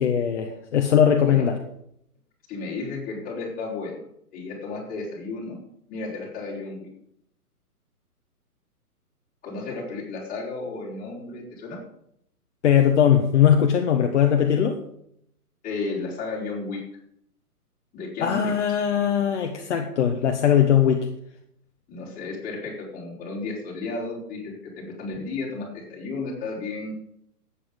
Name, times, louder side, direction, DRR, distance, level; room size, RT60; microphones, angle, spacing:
voice 1, 0.0-1.6 12.6-14.8 18.2-21.1, left 9 dB, 50° left, 4 dB, 1.4 m, -20 dB
voice 2, 2.5-4.0 4.3-5.6 5.9-6.9 9.4-11.8 15.6-16.8 17.9-18.5 21.9-26.9, left 3 dB, 20° left, -4 dB, 4.4 m, -33 dB
12.0 x 8.9 x 5.3 m, 0.72 s
figure-of-eight pair, 130°, 46 cm